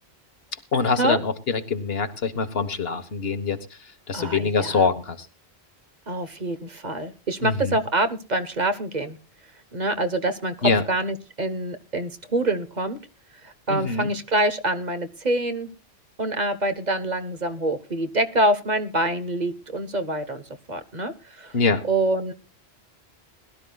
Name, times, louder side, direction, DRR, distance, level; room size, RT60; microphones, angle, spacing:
voice 1, 0.7-3.6 4.1-5.3 7.4-7.8 10.6-10.8 13.7-14.1 21.5-21.8, left 4 dB, 70° left, 9 dB, 1.5 m, -24 dB
voice 2, 4.1-4.8 6.1-9.2 9.7-13.0 13.4-15.7 16.2-20.4 20.7-21.6 21.8-22.3, right 1 dB, 45° right, 10 dB, 1.2 m, -26 dB
21.0 x 12.5 x 2.3 m, 0.33 s
omnidirectional pair, 1.1 m